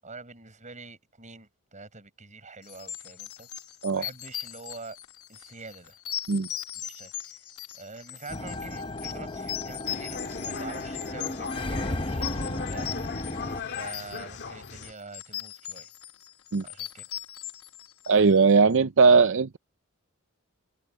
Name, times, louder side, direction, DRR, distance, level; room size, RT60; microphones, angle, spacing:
voice 1, 0.0-3.5 3.9-5.0 5.3-6.0 6.7-7.4 7.8-12.9 13.7-15.9 16.6-17.1, right 3 dB, 35° right, 7.9 m, -45 dB
sound 1, 2.7-18.5, left 12 dB, 80° left, 1.1 m, -39 dB
sound 2, 8.3-13.6, left 2 dB, 25° left, 0.9 m, -34 dB
sound 3, 9.9-14.9, left 5 dB, 55° left, 2.0 m, -39 dB
voice 2, 18.1-19.6, right 4 dB, 60° right, 0.6 m, -19 dB
head